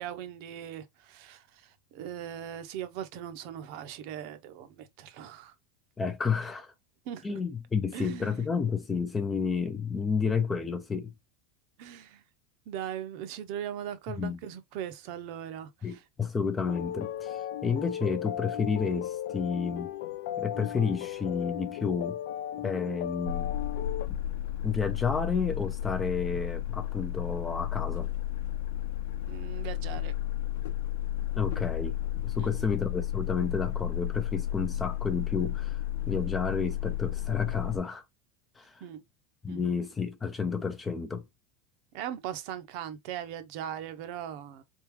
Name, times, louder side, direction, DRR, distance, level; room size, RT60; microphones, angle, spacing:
voice 1, 0.0-5.5 7.1-7.4 7.9-8.5 11.8-12.2 12.7-16.0 29.3-30.1 32.4-32.7 38.8-39.0 39.5-39.7 41.9-44.6, right 10 dB, 45° right, 0.7 m, -39 dB
voice 2, 6.0-6.7 7.2-11.1 14.2-14.4 15.8-19.9 20.4-22.2 22.6-23.5 24.6-28.1 31.4-32.0 32.2-38.0 38.6-38.8 39.4-41.2, left 5 dB, 10° left, 0.4 m, -31 dB
sound 1, 16.7-24.1, left 11 dB, 65° left, 0.5 m, -36 dB
sound 2, 23.3-37.8, left 13 dB, 85° left, 0.9 m, -33 dB
3.9 x 3.6 x 3.0 m
supercardioid pair, 175°, 0 cm